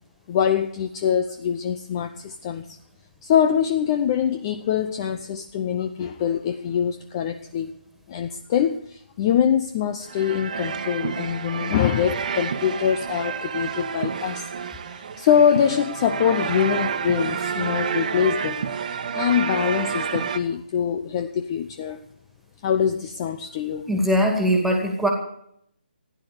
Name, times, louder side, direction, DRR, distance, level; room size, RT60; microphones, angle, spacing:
voice 1, 0.3-2.7 3.2-7.7 8.1-14.5 14.9-22.0 22.6-23.9, left 8 dB, 25° left, 8 dB, 0.7 m, -24 dB
sound 1, 10.1-20.4, right 7 dB, 45° right, 1.3 m, -29 dB
voice 2, 23.9-25.1, equal, ahead, 3 dB, 2.3 m, -21 dB
15.0 x 10.5 x 6.9 m, 0.71 s
figure-of-eight pair, 155°, 6 cm